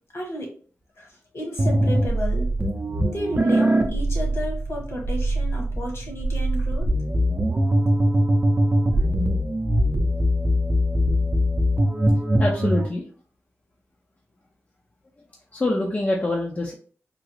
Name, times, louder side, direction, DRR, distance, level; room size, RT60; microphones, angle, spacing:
voice 1, 0.1-0.5 1.0-2.5 3.0-6.9, left 1 dB, 60° left, -1 dB, 1.4 m, -32 dB
sound 1, 1.6-12.9, equal, 35° right, 0.6 m, -22 dB
voice 2, 12.4-13.1 15.5-16.7, left 2 dB, 35° left, -1 dB, 0.5 m, -25 dB
3.6 x 2.0 x 3.1 m, 0.43 s
wide cardioid pair, 75°, 5 cm